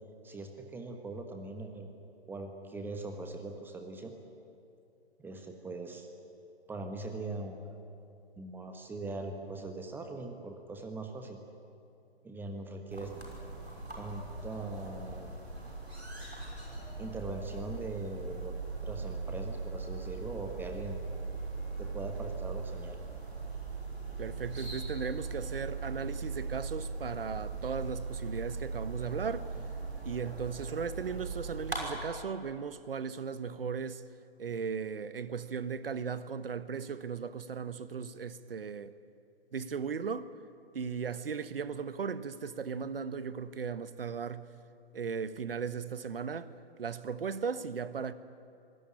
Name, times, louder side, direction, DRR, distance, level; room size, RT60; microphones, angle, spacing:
voice 1, 0.2-1.9 2.3-4.1 5.2-6.1 6.7-7.8 8.4-11.4 12.2-13.1 13.9-15.3 17.0-18.5 18.8-21.0 21.8-23.0, right 2 dB, 5° right, 1.3 m, -41 dB
sound 1, 12.9-31.8, right 4 dB, 85° right, 6.1 m, -39 dB
voice 2, 24.2-29.5 30.0-34.0 34.4-38.9 39.5-40.3 40.7-44.5 44.9-46.5 46.8-48.1, right 6 dB, 60° right, 1.2 m, -37 dB
24.5 x 17.5 x 9.9 m
figure-of-eight pair, 130°, 32 cm